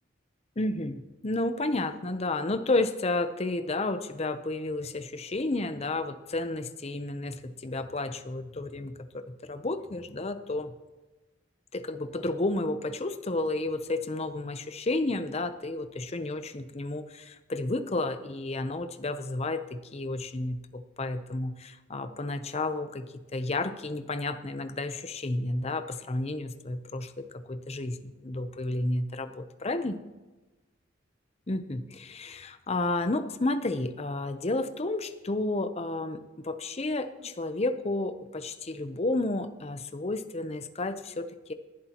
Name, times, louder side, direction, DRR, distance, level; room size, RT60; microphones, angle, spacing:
voice 1, 0.6-10.7 11.7-30.0 31.5-41.5, left 2 dB, 35° left, 10 dB, 0.7 m, -31 dB
19.0 x 11.0 x 3.0 m, 1.1 s
head